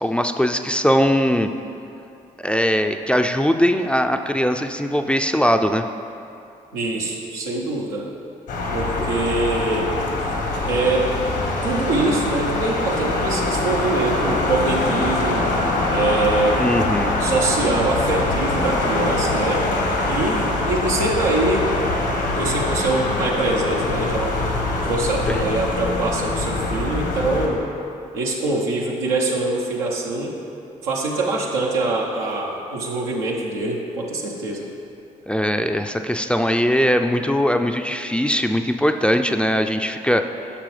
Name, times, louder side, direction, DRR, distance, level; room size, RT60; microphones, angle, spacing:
voice 1, 0.0-1.5 2.4-5.9 9.0-9.1 16.6-17.1 25.3-25.4 35.3-40.2, equal, 5° left, 6 dB, 0.4 m, -20 dB
voice 2, 6.7-8.1 8.7-9.9 10.6-11.1 11.6-15.5 15.9-16.7 17.2-19.7 20.1-21.7 22.4-24.4 24.8-27.6 28.1-30.3 30.8-34.7, right 2 dB, 90° right, -3 dB, 0.9 m, -24 dB
sound 1, 8.5-27.5, left 2 dB, 75° left, 1.2 m, -23 dB
9.8 x 6.1 x 3.3 m, 2.7 s
hypercardioid pair, 45°, 17 cm